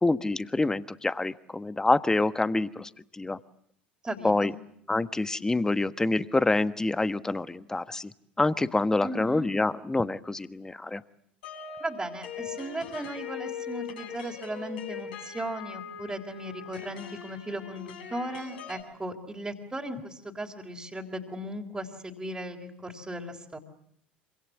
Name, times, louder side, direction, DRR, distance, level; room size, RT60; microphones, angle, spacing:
voice 1, 0.0-3.4 4.2-4.5 4.9-8.1 8.4-11.0, left 2 dB, 10° left, 15 dB, 1.3 m, -26 dB
voice 2, 4.0-4.6 9.0-9.5 11.8-23.6, right 1 dB, 10° right, -1 dB, 3.8 m, -37 dB
sound 1, 11.4-18.8, left 7 dB, 65° left, 6.9 m, -41 dB
26.5 x 26.0 x 7.4 m, 0.68 s
figure-of-eight pair, 70°, 5 cm